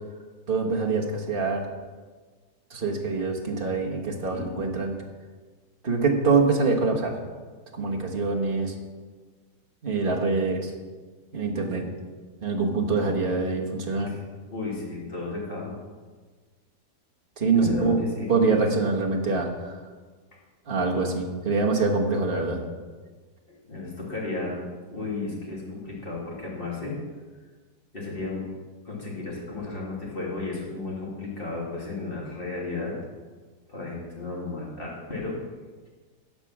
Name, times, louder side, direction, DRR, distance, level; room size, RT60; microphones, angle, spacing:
voice 1, 0.5-1.7 2.7-5.0 5.8-7.1 7.7-8.7 9.8-10.7 11.3-11.8 12.4-14.1 17.4-18.0 18.3-19.8 20.7-22.6, right 4 dB, 35° right, 0 dB, 1.5 m, -25 dB
voice 2, 14.5-15.7 17.6-18.3 18.6-18.8 23.5-24.6 24.9-26.9 27.9-28.4 28.8-32.9 33.7-35.3, left 3 dB, 30° left, -4 dB, 2.8 m, -33 dB
15.0 x 5.3 x 6.0 m, 1.4 s
omnidirectional pair, 1.8 m